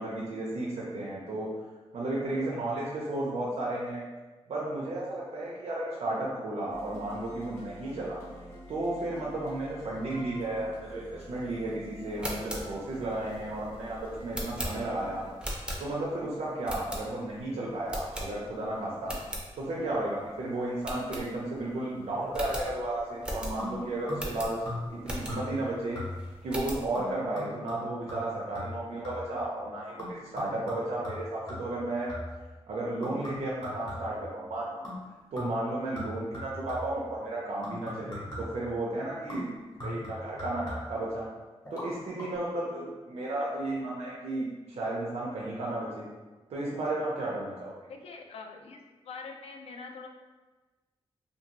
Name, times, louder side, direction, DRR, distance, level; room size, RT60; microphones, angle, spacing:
voice 1, 0.0-1.5 1.9-4.0 4.5-8.2 8.7-15.2 15.8-19.2 19.6-24.6 24.9-26.0 26.4-32.1 32.7-34.9 35.3-41.3 41.7-46.0 46.5-47.7, right 2 dB, 75° right, -5 dB, 0.5 m, -33 dB
sound 1, 6.7-15.3, equal, 20° left, 0.7 m, -47 dB
sound 2, 12.0-16.2 16.6-17.4 17.9-18.7 19.0-19.5 19.9-20.0 20.3-20.4 20.8-21.7 22.0-22.1 22.3-25.6 26.1-26.9, equal, 10° right, 0.4 m, -38 dB
sound 3, 23.6-24.4 24.7-25.0 25.3-25.7 26.0-26.4 26.9-29.4 30.0-32.5 33.0-34.3 34.8-35.1 35.4-37.0 37.6-38.7 39.3-41.1 41.6-41.9 42.2-42.3, left 1 dB, 35° left, 1.2 m, -40 dB
voice 2, 47.9-50.1, left 4 dB, 70° left, 3 dB, 0.4 m, -44 dB
2.6 x 2.5 x 2.8 m, 1.2 s
wide cardioid pair, 175°, 11 cm